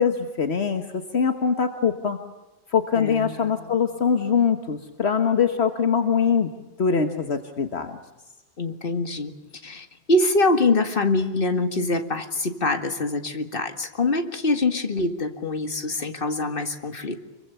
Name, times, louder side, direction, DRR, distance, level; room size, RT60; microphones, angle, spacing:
voice 1, 0.0-2.2 2.7-6.5 6.8-8.0, left 6 dB, 70° left, 7 dB, 1.6 m, -23 dB
voice 2, 2.9-3.7 8.6-9.3 9.6-17.2, left 2 dB, 55° left, 7 dB, 2.1 m, -24 dB
26.0 x 23.5 x 7.0 m, 1.1 s
omnidirectional pair, 1.1 m